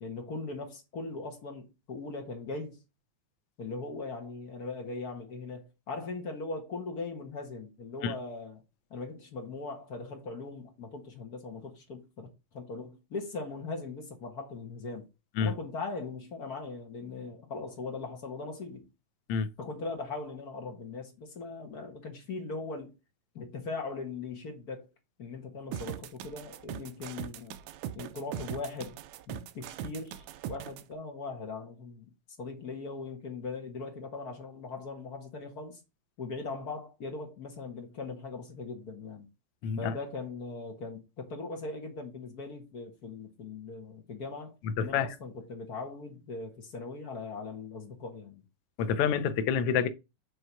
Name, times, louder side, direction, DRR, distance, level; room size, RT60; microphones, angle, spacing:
voice 1, 0.0-2.8 3.6-8.6 8.9-12.3 12.5-15.0 15.4-18.9 19.6-22.9 23.3-24.9 25.2-27.6 27.9-29.0 29.3-32.1 32.4-35.8 36.2-39.3 39.8-48.4, left 3 dB, 45° left, 1.3 m, -40 dB
sound 1, 25.7-30.8, right 11 dB, 80° right, 1.8 m, -40 dB
voice 2, 39.6-39.9 44.8-45.1 48.8-49.9, left 7 dB, 70° left, 1.5 m, -28 dB
7.7 x 3.3 x 5.5 m
omnidirectional pair, 3.5 m